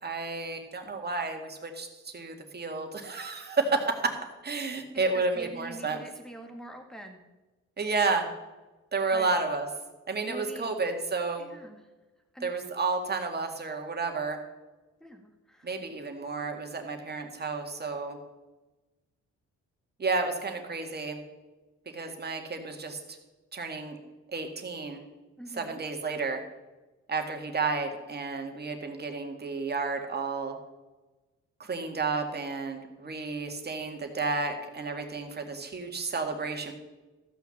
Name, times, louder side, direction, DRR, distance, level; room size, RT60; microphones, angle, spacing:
voice 1, 0.0-4.2 4.4-6.0 7.8-8.3 8.9-9.7 10.1-11.5 12.4-14.4 15.6-18.2 20.0-21.2 21.9-23.0 23.5-24.0 24.3-25.0 25.5-26.4 27.1-30.6 31.6-36.7, right 4 dB, 35° right, 4 dB, 2.0 m, -31 dB
voice 2, 5.1-7.2 9.1-9.3 10.3-10.7 11.4-11.8 12.3-12.5 15.0-15.7 25.4-25.8, right 1 dB, ahead, 4 dB, 1.8 m, -44 dB
14.0 x 5.8 x 7.2 m, 1.2 s
cardioid pair, 90°, 30 cm